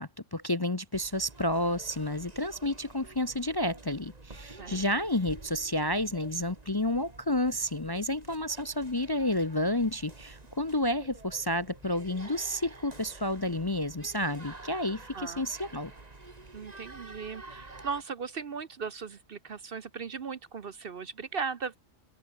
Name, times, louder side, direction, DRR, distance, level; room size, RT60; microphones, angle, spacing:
voice 1, 0.0-15.9, left 1 dB, 20° left, 0.7 m, -30 dB
sound 1, 0.9-18.0, right 2 dB, 30° right, 2.3 m, -49 dB
voice 2, 15.1-15.5 16.5-21.8, right 5 dB, 50° right, 1.0 m, -37 dB
open air
omnidirectional pair, 1.4 m